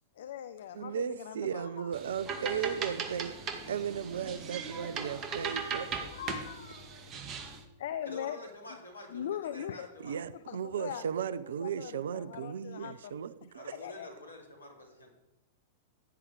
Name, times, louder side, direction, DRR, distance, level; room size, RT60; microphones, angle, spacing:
voice 1, 0.2-1.9 2.8-2.9 3.6-3.7 6.0-6.9 7.8-8.4 9.1-9.9 10.3-11.1 11.6-13.2 13.7-14.1, left 10 dB, 60° left, 12 dB, 0.6 m, -41 dB
voice 2, 0.7-3.3 3.7-6.0 10.0-13.7, right 8 dB, 70° right, 16 dB, 0.8 m, -36 dB
sound 1, 1.9-7.6, right 5 dB, 30° right, 2.0 m, -38 dB
voice 3, 8.0-10.1 13.5-15.1, left 2 dB, 85° left, 2 dB, 3.6 m, -47 dB
16.0 x 10.5 x 5.0 m, 0.91 s
figure-of-eight pair, 95°, 0 cm